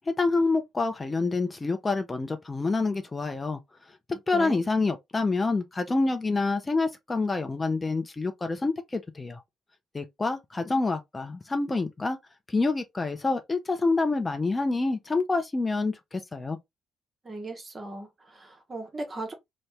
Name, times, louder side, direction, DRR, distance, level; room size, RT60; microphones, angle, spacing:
voice 1, 0.1-3.6 4.1-9.4 9.9-12.2 12.5-16.6, left 3 dB, 25° left, 0.5 m, -27 dB
voice 2, 17.2-19.3, right 2 dB, 30° right, 0.9 m, -37 dB
2.7 x 2.0 x 3.2 m
figure-of-eight pair, 45°, 0 cm